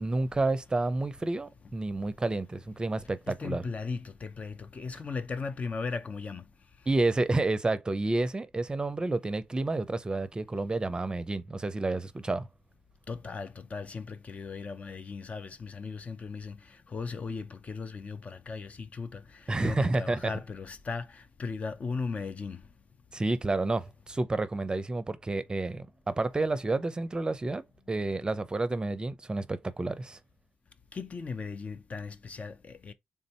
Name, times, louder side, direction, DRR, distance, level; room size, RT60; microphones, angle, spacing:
voice 1, 0.0-3.6 6.9-12.5 19.5-20.3 23.1-27.6 27.9-30.2, right 2 dB, 25° right, 0.6 m, -30 dB
voice 2, 3.3-6.4 13.1-22.6 30.9-32.9, left 4 dB, 45° left, 0.6 m, -37 dB
3.6 x 2.6 x 4.2 m
supercardioid pair, 55°, 3 cm